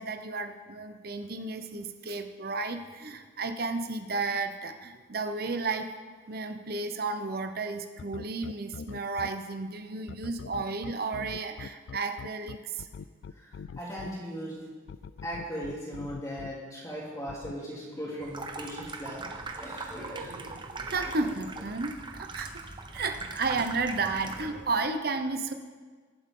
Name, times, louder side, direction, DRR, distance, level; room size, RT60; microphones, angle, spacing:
voice 1, 0.0-5.9 6.3-12.9 20.0-22.5 22.9-25.5, right 3 dB, 50° right, 7 dB, 0.8 m, -33 dB
sound 1, 8.0-9.3 10.1-14.1 14.9-16.5 17.3-17.5, left 6 dB, 75° left, 0.3 m, -42 dB
voice 2, 13.3-14.6 15.2-20.5 21.1-21.3, equal, 15° left, -6 dB, 3.0 m, -39 dB
Water tap faucet / Sink (filling or washing), 18.2-24.7, right 3 dB, 25° right, 0.8 m, -40 dB
22.0 x 7.8 x 3.8 m, 1.5 s
head